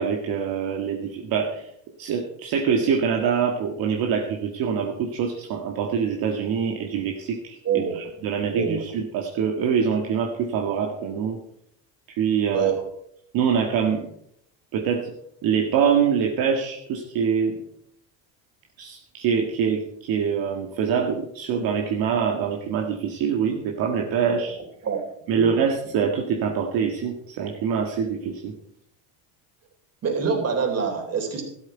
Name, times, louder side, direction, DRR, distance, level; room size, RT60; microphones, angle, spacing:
voice 1, 0.0-1.7 2.0-11.4 12.1-12.7 13.3-14.1 14.7-15.1 15.4-17.6 18.8-24.6 25.3-28.5, right 7 dB, 65° right, 1 dB, 1.8 m, -24 dB
voice 2, 7.6-8.0 8.5-8.8 12.5-12.8 24.2-24.4 24.8-25.0 25.3-25.5 30.0-31.4, right 6 dB, 40° right, 3 dB, 3.9 m, -25 dB
13.0 x 12.0 x 4.6 m, 0.72 s
cardioid pair, 115°, 38 cm